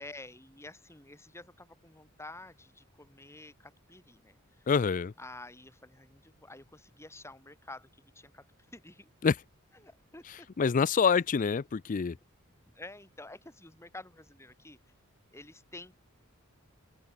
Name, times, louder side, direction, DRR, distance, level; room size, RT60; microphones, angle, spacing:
voice 1, 0.0-4.4 5.2-7.9 8.1-8.4 8.7-9.1 9.8-10.5 12.7-14.8 15.3-15.9, left 2 dB, 15° left, 4.4 m, -49 dB
voice 2, 4.7-5.1 9.2-9.4 10.6-12.2, left 6 dB, 40° left, 0.4 m, -26 dB
open air
head